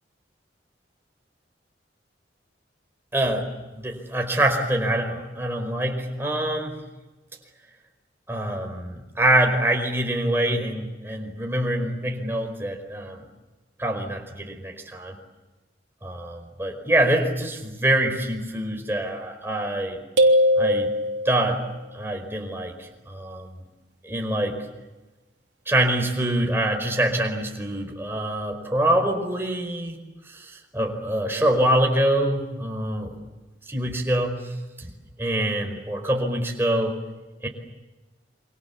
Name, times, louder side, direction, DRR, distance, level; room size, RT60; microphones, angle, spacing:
voice 1, 3.1-3.5 3.7-6.8 8.3-13.2 13.8-15.1 16.0-20.0 20.6-20.9 21.2-21.7 21.9-23.5 24.0-24.6 25.7-30.0 30.3-33.2 33.7-34.5 34.8-34.9 35.2-37.0 37.4-37.5, right 1 dB, 15° right, 3 dB, 4.9 m, -25 dB
sound 1, 20.2-21.7, equal, 80° right, 3.3 m, -20 dB
28.5 x 26.0 x 7.3 m, 1.2 s
head